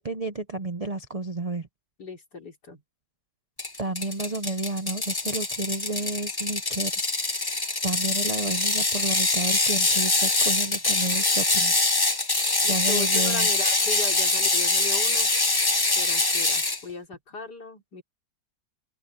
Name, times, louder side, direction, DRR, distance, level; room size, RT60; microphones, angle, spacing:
voice 1, 0.0-1.7 3.8-7.1 7.8-11.9 12.7-13.5 16.4-16.5, right 2 dB, 60° right, 0.3 m, -31 dB
voice 2, 2.0-2.8 12.6-15.3 16.0-18.0, left 3 dB, 60° left, 4.3 m, -37 dB
Ratchet pawl, 3.6-16.8, left 2 dB, 20° left, 0.7 m, -24 dB
open air
omnidirectional pair, 2.0 m